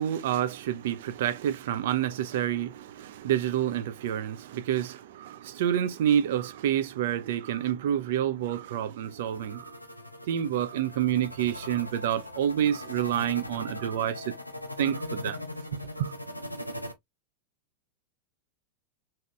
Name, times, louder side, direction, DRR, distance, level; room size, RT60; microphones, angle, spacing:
voice 1, 0.0-9.8 10.3-14.2 14.8-15.4 16.0-16.1, right 10 dB, 55° right, 0.4 m, -28 dB
sound 1, 9.0-16.9, left 1 dB, 90° left, 0.5 m, -40 dB
2.9 x 2.8 x 2.2 m
figure-of-eight pair, 90°, 0 cm